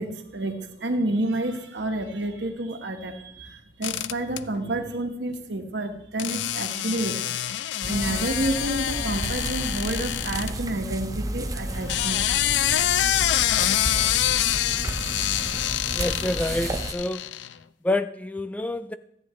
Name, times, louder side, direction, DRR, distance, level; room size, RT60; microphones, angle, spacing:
voice 1, 0.0-12.3 13.9-14.0 14.5-15.0, right 1 dB, 85° right, 5 dB, 1.4 m, -30 dB
sound 1, 3.8-4.4 6.2-10.5 11.7-17.5, left 12 dB, 90° left, 0.4 m, -26 dB
paws on carpet, 7.8-16.9, right 1 dB, 20° right, 0.7 m, -32 dB
voice 2, 15.9-17.2 17.8-19.0, left 2 dB, 10° left, 12 dB, 0.3 m, -27 dB
13.5 x 9.5 x 3.1 m, 0.76 s
head